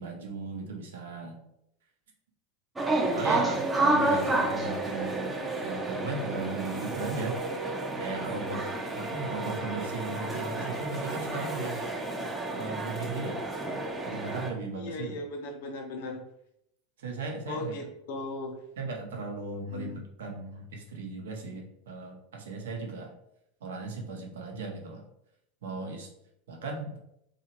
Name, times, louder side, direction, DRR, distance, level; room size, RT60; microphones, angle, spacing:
voice 1, 0.0-1.4 3.0-7.4 8.0-8.6 8.9-11.8 12.5-13.5 14.1-15.2 17.0-17.7 18.8-23.1 23.6-25.0 25.6-26.1 26.5-27.0, right 3 dB, 75° right, 1 dB, 0.7 m, -37 dB
sound 1, 2.8-14.5, right 2 dB, 15° right, 0.5 m, -30 dB
voice 2, 14.7-16.2 17.5-18.6 19.7-20.0, left 2 dB, 65° left, 3 dB, 0.6 m, -38 dB
2.8 x 2.4 x 2.8 m, 0.77 s
hypercardioid pair, 90°, 0 cm